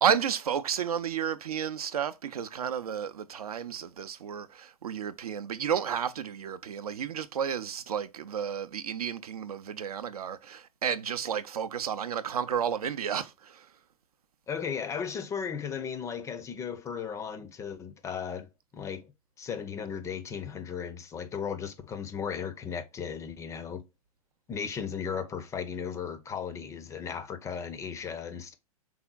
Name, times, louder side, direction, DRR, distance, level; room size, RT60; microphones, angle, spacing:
voice 1, 0.0-13.7, right 8 dB, 70° right, 0.5 m, -32 dB
voice 2, 14.5-18.5 18.7-19.1 19.4-23.8 24.5-28.5, left 7 dB, 15° left, 0.4 m, -36 dB
4.8 x 3.5 x 2.2 m
figure-of-eight pair, 105°, 20 cm